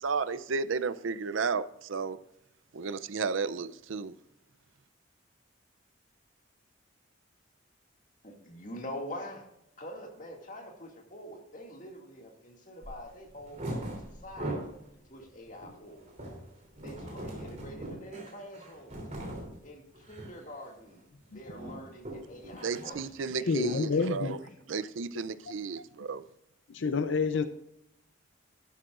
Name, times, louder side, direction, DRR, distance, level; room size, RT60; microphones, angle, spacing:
voice 1, 0.0-2.2 2.7-4.1 22.6-24.4 24.7-26.2, right 5 dB, 70° right, 0.5 m, -33 dB
voice 2, 8.2-9.5 9.8-14.6 15.1-16.1 16.8-19.0 19.6-24.5, equal, 40° left, 2.2 m, -45 dB
sound 1, 12.8-13.0 13.4-14.8 15.2-19.5 19.9-20.4 20.7-20.9 21.2-22.9, right 1 dB, 35° right, 3.2 m, -40 dB
voice 3, 23.5-24.4 26.7-27.4, left 4 dB, 65° left, 0.5 m, -28 dB
12.5 x 11.5 x 2.5 m
head